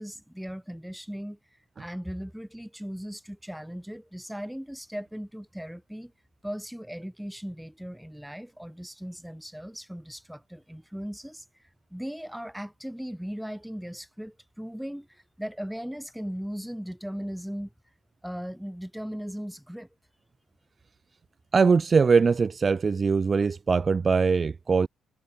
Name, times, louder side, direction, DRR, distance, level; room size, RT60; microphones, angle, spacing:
voice 1, 0.0-1.4 1.8-6.1 6.4-11.4 11.9-17.7 18.2-19.9, equal, ahead, 4.1 m, -38 dB
voice 2, 21.5-24.9, right 5 dB, 35° right, 0.3 m, -22 dB
cardioid pair, 90°, 0 cm